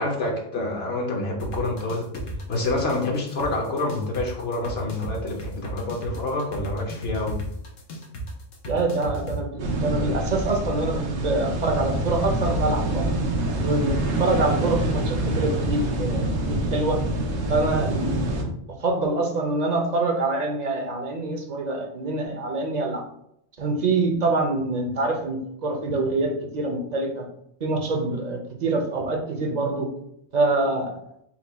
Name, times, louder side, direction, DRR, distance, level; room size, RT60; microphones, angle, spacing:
voice 1, 0.0-7.4, left 2 dB, 60° left, 1 dB, 0.8 m, -27 dB
sound 1, 1.4-9.4, right 1 dB, 90° left, 1.2 m, -34 dB
voice 2, 8.7-13.1 13.6-17.0 17.5-18.3 18.8-23.0 23.6-27.3 27.6-29.9 30.3-30.9, right 2 dB, 45° right, 2 dB, 0.6 m, -25 dB
sound 2, 9.6-18.4, right 1 dB, 85° right, 1.1 m, -26 dB
4.4 x 2.2 x 4.0 m, 0.74 s
omnidirectional pair, 1.3 m